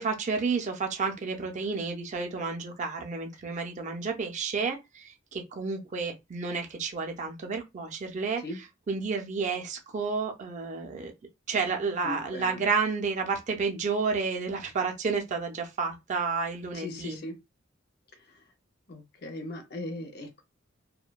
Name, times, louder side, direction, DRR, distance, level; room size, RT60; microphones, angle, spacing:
voice 1, 0.0-8.4 8.9-11.1 11.5-17.2, right 4 dB, 35° right, 0.4 m, -31 dB
voice 2, 12.0-12.6 16.7-17.4 18.9-20.4, left 1 dB, 55° left, 0.6 m, -38 dB
2.6 x 2.1 x 2.2 m
head